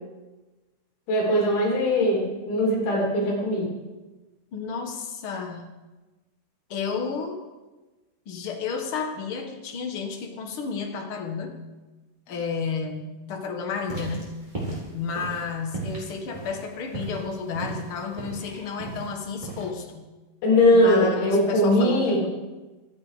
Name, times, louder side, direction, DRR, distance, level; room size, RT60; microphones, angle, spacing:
voice 1, 1.1-3.7 20.4-22.3, left 1 dB, 75° left, -2 dB, 5.5 m, -20 dB
voice 2, 4.5-5.6 6.7-7.4 8.2-11.6 12.3-14.3 14.9-20.0 20.7-22.3, left 5 dB, 50° left, 3 dB, 1.7 m, -32 dB
sound 1, 13.8-19.6, right 2 dB, 10° right, 4.2 m, -35 dB
26.0 x 8.9 x 5.1 m, 1.2 s
omnidirectional pair, 4.5 m